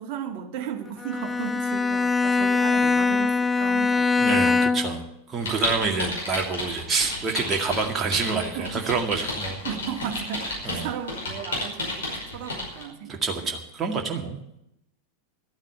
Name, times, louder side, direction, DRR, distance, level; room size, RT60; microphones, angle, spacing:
voice 1, 0.0-4.7 8.5-8.9 9.6-13.3, right 9 dB, 45° right, 4 dB, 1.8 m, -35 dB
Bowed string instrument, 1.0-5.1, left 4 dB, 15° left, 0.4 m, -22 dB
voice 2, 4.2-9.6 10.6-10.9 13.2-14.4, right 4 dB, 20° right, 1 dB, 2.0 m, -27 dB
sound 1, 5.4-12.8, left 2 dB, 65° left, 5.3 m, -32 dB
13.0 x 8.7 x 8.9 m, 0.82 s
figure-of-eight pair, 90°, 0 cm